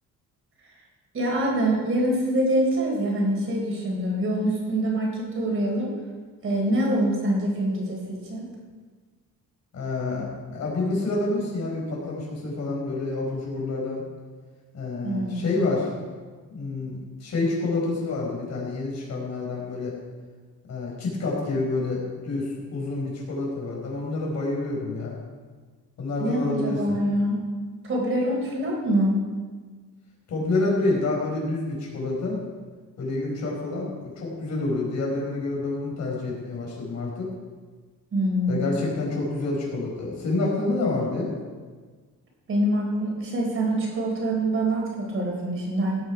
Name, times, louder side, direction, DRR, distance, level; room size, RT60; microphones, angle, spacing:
voice 1, 1.1-5.9 6.4-8.5 15.0-15.5 26.2-27.4 27.8-29.2 38.1-38.8 42.5-46.0, right 1 dB, 40° right, -2 dB, 4.1 m, -25 dB
voice 2, 9.7-14.0 14.7-15.9 16.5-19.9 20.7-25.2 26.0-27.0 30.3-32.4 33.0-37.3 38.5-41.3, left 2 dB, 55° left, -2 dB, 4.8 m, -28 dB
17.0 x 9.2 x 4.9 m, 1.4 s
cardioid pair, 155°, 33 cm